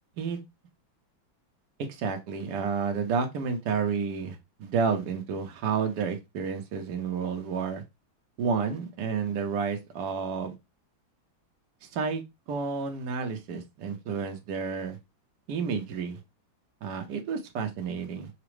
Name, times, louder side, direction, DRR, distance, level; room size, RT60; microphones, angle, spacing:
voice 1, 1.9-7.8 8.4-10.6 11.9-12.2 12.5-15.0 15.5-16.2 16.8-18.3, right 5 dB, 65° right, 1.3 m, -30 dB
5.9 x 2.0 x 3.1 m
omnidirectional pair, 2.1 m